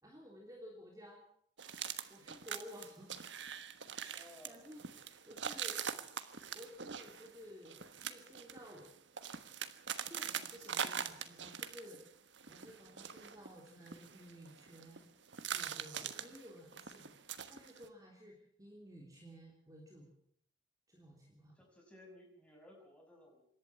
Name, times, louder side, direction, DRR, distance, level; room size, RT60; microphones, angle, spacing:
voice 1, 0.0-1.2 2.1-3.3 4.0-4.1 4.4-4.8 5.3-5.8 6.5-8.9 10.0-12.0 12.5-15.1 15.5-17.1 17.5-20.1 20.9-21.6, equal, 20° right, -1 dB, 3.3 m, -54 dB
sound 1, 1.6-12.1 12.3-15.0 15.3-17.9, right 8 dB, 80° right, 1.4 m, -43 dB
voice 2, 4.2-4.7 21.5-23.5, left 1 dB, 5° left, 0 dB, 6.3 m, -58 dB
26.5 x 11.5 x 8.6 m, 0.64 s
head